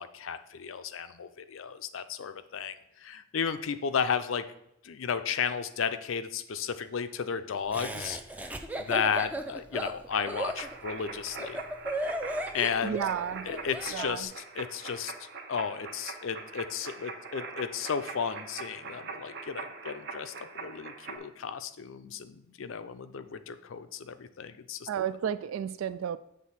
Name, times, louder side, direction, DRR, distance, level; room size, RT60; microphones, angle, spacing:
voice 1, 0.0-4.4 4.8-11.6 12.5-13.0 13.5-24.9, left 6 dB, 70° left, 11 dB, 0.5 m, -34 dB
Laughter, 7.7-14.1, right 1 dB, 5° right, 0.4 m, -36 dB
sound 1, 10.1-21.2, right 4 dB, 55° right, 0.9 m, -43 dB
voice 2, 12.8-13.5 13.9-14.3 24.9-26.2, right 8 dB, 80° right, 14 dB, 0.3 m, -32 dB
7.5 x 3.5 x 5.9 m, 0.80 s
head